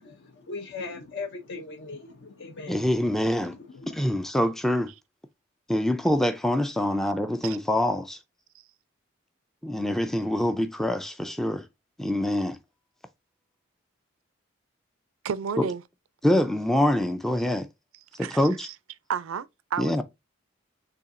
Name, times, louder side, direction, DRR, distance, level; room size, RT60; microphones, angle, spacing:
voice 1, 0.0-2.9 3.7-4.1, left 4 dB, 55° left, 0.6 m, -39 dB
voice 2, 2.7-3.6 3.9-4.9 5.7-8.2 9.6-11.7 12.0-12.6 15.6-15.7 16.2-17.7 18.2-18.7 19.8-20.0, left 1 dB, ahead, 0.3 m, -25 dB
voice 3, 15.2-15.8 18.2-18.7 19.1-20.0, right 7 dB, 80° right, 0.4 m, -32 dB
6.8 x 2.8 x 2.5 m
head